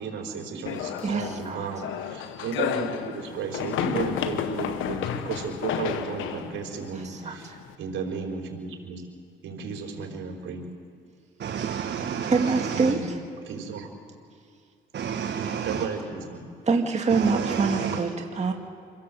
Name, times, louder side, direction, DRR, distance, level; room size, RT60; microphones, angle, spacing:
voice 1, 0.0-9.0 9.4-10.7 12.7-13.1 13.4-13.9 15.6-16.5, right 5 dB, 75° right, 4.2 m, -34 dB
sound 1, 0.7-7.7, left 9 dB, 90° left, 1.2 m, -32 dB
voice 2, 1.0-1.7 6.9-7.3 12.2-13.0 16.7-18.5, right 4 dB, 35° right, 2.1 m, -25 dB
voice 3, 11.4-12.9 14.9-15.8 17.1-18.0, right 7 dB, 60° right, 1.5 m, -30 dB
26.5 x 17.5 x 7.7 m
cardioid pair, 90°, 20 cm